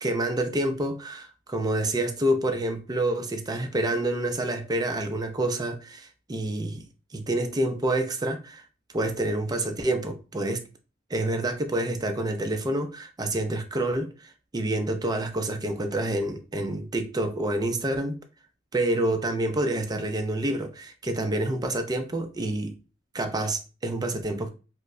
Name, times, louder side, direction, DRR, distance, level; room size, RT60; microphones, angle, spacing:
voice 1, 0.0-6.9 7.1-8.6 8.9-10.6 11.1-18.2 18.7-22.8 23.1-24.5, right 1 dB, 20° right, 0.4 m, -28 dB
4.5 x 2.0 x 2.5 m
head